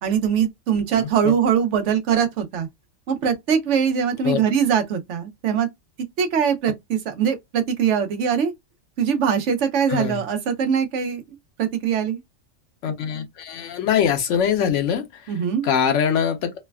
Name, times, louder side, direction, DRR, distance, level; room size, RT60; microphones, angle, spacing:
voice 1, 0.0-2.7 3.1-5.7 6.2-8.5 9.0-11.2 11.6-12.2 15.3-15.7, right 7 dB, 70° right, 0.9 m, -22 dB
voice 2, 0.9-1.3 4.2-4.4 9.9-10.2 12.8-15.2 15.6-16.5, left 8 dB, 70° left, 0.9 m, -23 dB
3.2 x 2.1 x 2.2 m
omnidirectional pair, 1.3 m